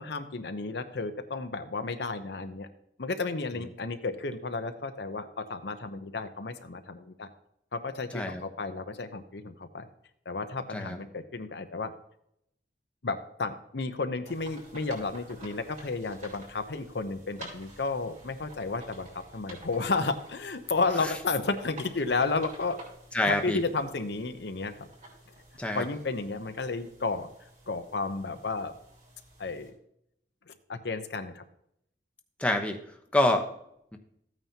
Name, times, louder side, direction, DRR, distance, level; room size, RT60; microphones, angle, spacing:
voice 1, 0.0-2.7 3.0-7.3 7.7-9.9 10.3-11.9 13.0-22.8 23.3-24.9 25.7-27.3 27.7-28.7 29.4-29.7 30.5-31.4, left 3 dB, 65° left, 8 dB, 0.8 m, -32 dB
sound 1, 14.2-29.7, right 1 dB, 40° right, 4.9 m, -51 dB
voice 2, 23.1-23.6 25.6-25.8 32.4-32.8 33.1-33.5 33.9-34.0, left 1 dB, 5° left, 4 dB, 0.9 m, -26 dB
14.5 x 9.1 x 2.9 m, 0.75 s
head